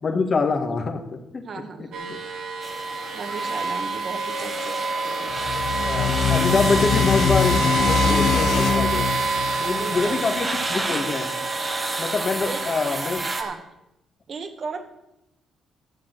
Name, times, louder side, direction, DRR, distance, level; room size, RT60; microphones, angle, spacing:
voice 1, 0.0-1.0 1.3-1.4 2.1-2.2 5.8-9.0 9.6-11.3 12.0-13.2, left 4 dB, 40° left, 5 dB, 1.8 m, -25 dB
voice 2, 1.4-2.2 3.1-4.7 5.0-5.3 9.7-10.3 12.5-12.6 13.4-13.6 14.3-14.9, right 5 dB, 50° right, 7 dB, 1.7 m, -35 dB
sound 1, 1.9-13.5, right 3 dB, 75° right, 2.2 m, -28 dB
sound 2, 2.6-13.4, right 2 dB, 25° right, 1.5 m, -32 dB
sound 3, 5.3-10.6, left 6 dB, 70° left, 1.3 m, -24 dB
13.0 x 7.5 x 6.1 m, 0.87 s
cardioid pair, 90°, 0 cm